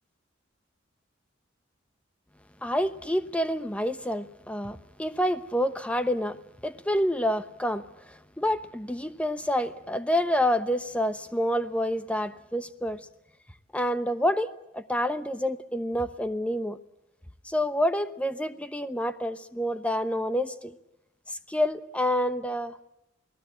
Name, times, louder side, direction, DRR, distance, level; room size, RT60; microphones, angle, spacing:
voice 1, 2.6-13.1 13.7-16.8 17.4-20.8 21.3-22.9, equal, 5° left, 0.9 m, -28 dB
29.0 x 18.5 x 7.7 m
head